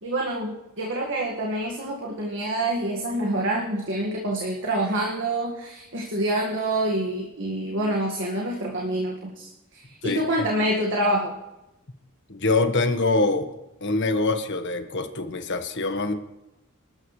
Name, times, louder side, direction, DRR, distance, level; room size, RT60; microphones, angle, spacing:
voice 1, 0.0-11.3, right 1 dB, 60° right, -1 dB, 1.9 m, -27 dB
voice 2, 10.0-10.5 12.3-13.5 13.8-16.1, left 3 dB, 55° left, 7 dB, 1.4 m, -24 dB
27.0 x 13.0 x 3.3 m, 0.97 s
head